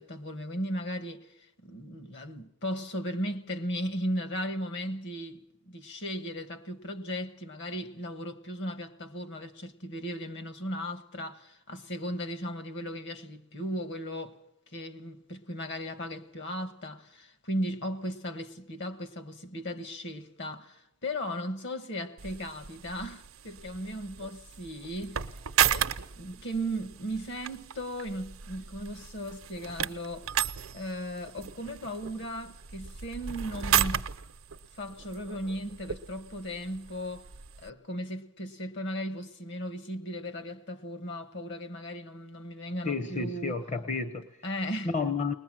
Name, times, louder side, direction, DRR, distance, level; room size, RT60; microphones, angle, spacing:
voice 1, 0.0-1.3 1.6-14.4 14.7-25.2 25.7-30.3 30.7-34.0 34.7-37.3 37.6-43.6 44.4-44.9, equal, 55° left, 1.3 m, -36 dB
sound 1, 22.2-37.7, right 9 dB, 80° right, 0.7 m, -34 dB
voice 2, 42.8-45.3, left 4 dB, 35° left, 0.8 m, -32 dB
21.5 x 20.0 x 7.6 m
head